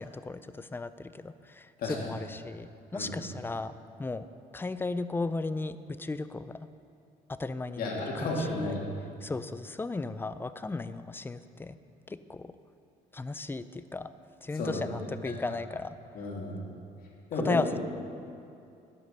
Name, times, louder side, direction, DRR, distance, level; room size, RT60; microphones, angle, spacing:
voice 1, 0.0-4.2 4.5-6.6 7.3-7.9 8.2-8.6 9.2-11.8 12.1-12.5 13.1-14.1 14.4-15.9 17.4-17.8, left 3 dB, 15° left, 13 dB, 0.4 m, -35 dB
voice 2, 1.8-2.1 2.9-3.1 7.8-8.9 14.5-15.6 16.1-16.7 17.3-17.6, left 2 dB, 60° left, -2 dB, 2.7 m, -33 dB
11.5 x 8.3 x 5.5 m, 2.6 s
cardioid pair, 110°, 17 cm